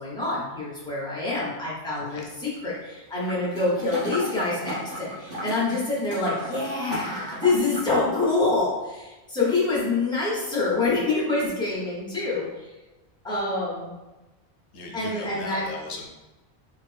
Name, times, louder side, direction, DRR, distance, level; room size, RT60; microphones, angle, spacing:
voice 1, 0.0-12.7 13.2-13.9 14.9-15.6, left 3 dB, 5° left, -7 dB, 0.9 m, -26 dB
sound 1, 3.3-7.9 8.3-8.4, equal, 55° right, 1.3 m, -35 dB
voice 2, 14.7-16.1, left 3 dB, 85° left, 1 dB, 0.9 m, -38 dB
3.3 x 2.7 x 3.3 m, 1.1 s
omnidirectional pair, 1.1 m